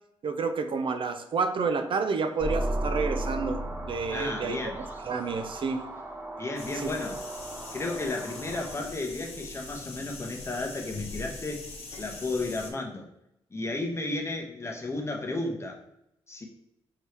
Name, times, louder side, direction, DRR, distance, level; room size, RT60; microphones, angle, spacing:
voice 1, 0.2-4.7 5.1-5.9 6.7-6.9, right 4 dB, 55° right, 7 dB, 0.4 m, -29 dB
sound 1, 2.4-8.8, right 1 dB, 20° right, 0.8 m, -35 dB
voice 2, 4.1-4.8 6.4-7.2 7.7-11.6 12.0-13.1 13.5-15.8 16.3-16.4, left 2 dB, 25° left, 1 dB, 0.9 m, -33 dB
sound 2, 6.6-12.7, left 3 dB, 85° left, 0.9 m, -42 dB
4.5 x 2.8 x 3.3 m, 0.83 s
cardioid pair, 75°, 10 cm